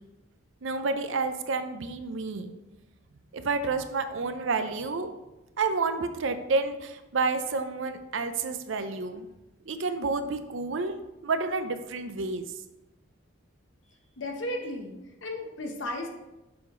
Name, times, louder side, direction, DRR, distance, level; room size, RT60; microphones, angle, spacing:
voice 1, 0.6-2.5 3.3-5.1 5.6-9.3 9.7-11.0 11.2-12.5, right 4 dB, 65° right, 9 dB, 0.5 m, -29 dB
voice 2, 14.2-16.1, left 1 dB, 60° left, 3 dB, 1.0 m, -35 dB
6.9 x 5.0 x 3.7 m, 1.0 s
head